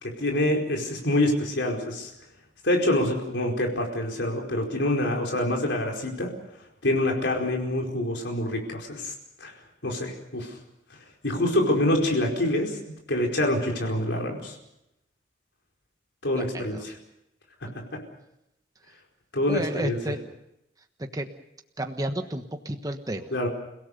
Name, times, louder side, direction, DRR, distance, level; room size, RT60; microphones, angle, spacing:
voice 1, 0.0-2.1 2.6-6.3 6.8-9.1 9.4-9.5 9.8-10.5 11.2-12.7 13.1-14.5 16.2-16.8 17.6-18.0 19.3-19.9 23.3-23.5, left 1 dB, 70° left, 1 dB, 4.8 m, -26 dB
voice 2, 16.4-16.9 19.5-20.3 21.0-21.3 21.8-23.3, right 1 dB, 20° right, 6 dB, 1.3 m, -32 dB
30.0 x 17.5 x 6.7 m, 0.82 s
head